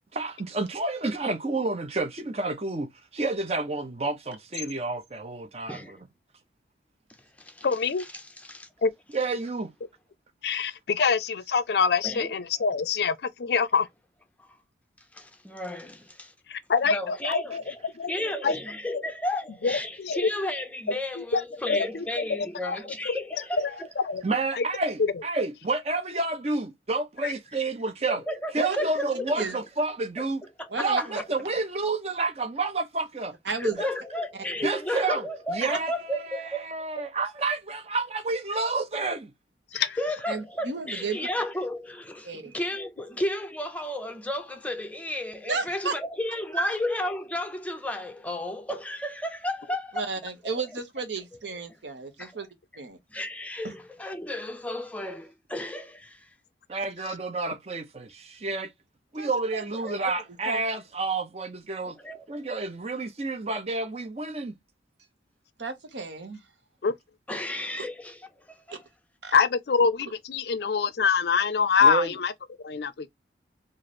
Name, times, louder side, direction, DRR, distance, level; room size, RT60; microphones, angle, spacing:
voice 1, 0.1-6.0 9.1-9.7 24.2-28.2 28.5-30.5 30.8-33.3 33.8-33.9 34.6-35.2 35.5-36.2 36.6-39.3 56.7-58.7 59.1-62.0 62.3-64.6 71.8-72.1, right 3 dB, 35° right, 0.6 m, -29 dB
voice 2, 5.7-6.0 7.2-7.7 8.0-8.7 12.0-12.3 14.4-14.6 15.1-16.3 16.9-17.8 18.1-23.9 28.1-29.5 30.6-31.3 33.6-36.7 36.9-37.1 39.7-50.1 52.2-52.3 53.1-56.3 59.8-60.0 62.0-62.2 67.3-68.8, left 1 dB, 10° left, 0.5 m, -33 dB
voice 3, 7.6-8.1 8.8-8.9 10.4-13.9 16.5-17.6 18.0-18.1 18.4-18.5 19.6-20.3 21.2-21.4 21.7-22.0 22.6-22.8 23.1-23.2 23.6-23.7 24.0-24.2 24.5-24.6 27.2-27.3 39.7-40.0 66.8-66.9 69.3-72.3 72.6-73.1, left 5 dB, 65° left, 0.4 m, -25 dB
voice 4, 30.7-31.2 33.4-33.8 35.6-35.8 40.3-41.2 42.2-42.5 45.5-45.9 46.5-46.8 49.9-52.5 52.8-53.0 53.6-53.7 59.2-59.6 60.0-60.1 60.5-60.6 65.6-66.4 67.8-67.9 68.7-68.8 69.2-69.4, right 4 dB, 80° right, 1.0 m, -33 dB
3.1 x 2.5 x 4.1 m
head